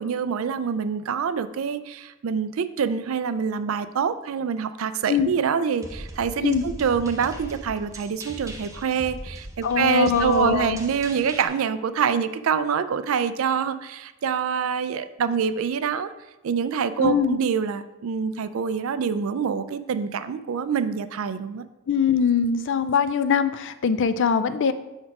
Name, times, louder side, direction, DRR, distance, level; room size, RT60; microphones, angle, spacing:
voice 1, 0.0-16.1 16.4-21.6, right 7 dB, 70° right, 12 dB, 0.4 m, -26 dB
sound 1, 5.8-11.5, right 1 dB, 15° right, 0.7 m, -39 dB
voice 2, 9.6-10.8 17.0-17.4 21.9-24.7, left 6 dB, 60° left, 12 dB, 0.4 m, -22 dB
5.8 x 4.4 x 4.8 m, 1.0 s
head